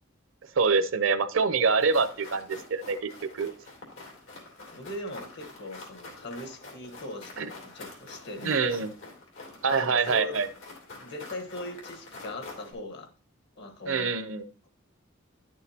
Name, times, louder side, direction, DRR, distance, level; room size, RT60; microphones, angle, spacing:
voice 1, 0.5-3.5 7.4-7.5 8.4-8.9 9.6-10.5 13.9-14.5, right 5 dB, 75° right, 12 dB, 0.7 m, -25 dB
sound 1, 1.8-12.7, left 3 dB, 90° left, 2.8 m, -46 dB
voice 2, 4.7-8.9 9.7-10.4 11.0-13.1 13.6-14.1, left 1 dB, 60° left, 7 dB, 1.2 m, -40 dB
10.5 x 6.4 x 2.8 m, 0.40 s
head